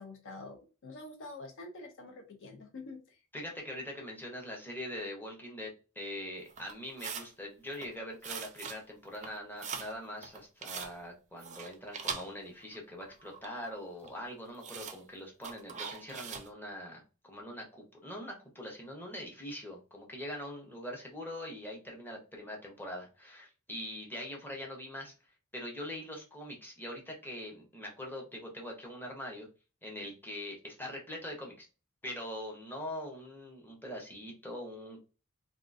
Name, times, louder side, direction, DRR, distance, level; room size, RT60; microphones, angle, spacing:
voice 1, 0.0-3.2, left 2 dB, 55° left, 5 dB, 0.5 m, -47 dB
voice 2, 3.3-5.7 6.0-25.1 25.5-29.5 29.8-31.7 32.0-35.0, left 1 dB, 10° left, -1 dB, 0.7 m, -43 dB
sound 1, 6.5-7.3 7.7-7.9 8.2-8.8 9.1-9.9 10.2-10.9 11.4-12.8 13.0-13.7 14.0-14.1 14.6-15.0 15.4-16.5, right 6 dB, 30° right, 0.4 m, -41 dB
3.6 x 2.3 x 2.5 m, 0.33 s
head